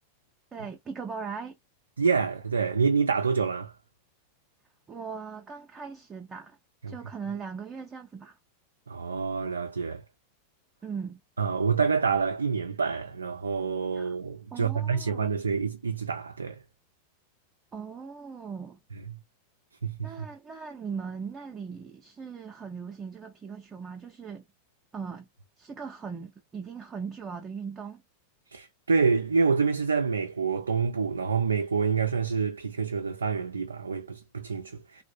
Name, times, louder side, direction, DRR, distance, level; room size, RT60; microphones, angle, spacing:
voice 1, 0.5-1.5 4.9-6.6 6.9-8.4 10.8-11.2 13.9-14.2 14.5-15.3 17.7-18.8 20.0-24.4 24.9-25.3 25.6-28.0, right 5 dB, 20° right, 0.5 m, -39 dB
voice 2, 2.0-3.7 6.8-6.9 8.9-10.0 11.4-16.6 19.8-20.3 28.5-35.0, right 5 dB, 75° right, 0.3 m, -27 dB
3.2 x 2.1 x 2.5 m
figure-of-eight pair, 90°, 0 cm